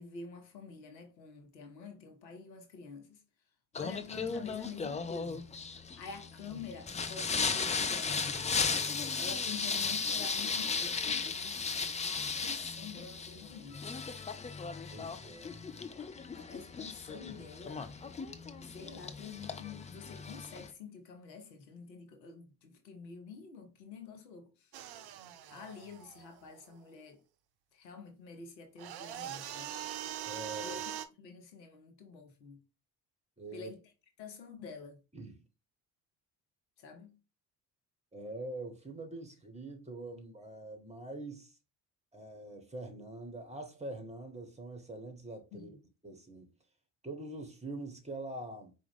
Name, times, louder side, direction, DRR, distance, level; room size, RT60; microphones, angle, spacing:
voice 1, 0.0-3.2 3.7-5.5 6.0-8.5 9.1-11.6 12.0-13.9 16.0-17.9 18.6-24.7 25.5-27.2 27.7-29.7 30.6-30.8 31.2-32.6 33.5-33.8 34.2-35.0 36.8-37.2 45.5-45.8, left 5 dB, 85° left, 0.8 m, -48 dB
Singing, 3.7-20.7, left 5 dB, 15° left, 0.4 m, -36 dB
voice 2, 14.9-15.6 30.2-30.8 33.4-33.7 35.1-35.4 38.1-41.6 42.1-45.8 46.0-46.5 47.0-48.7, right 2 dB, 15° right, 1.3 m, -44 dB
sound 1, 24.7-26.8 28.8-31.1, right 11 dB, 55° right, 0.6 m, -42 dB
4.6 x 2.5 x 3.5 m
figure-of-eight pair, 45°, 49 cm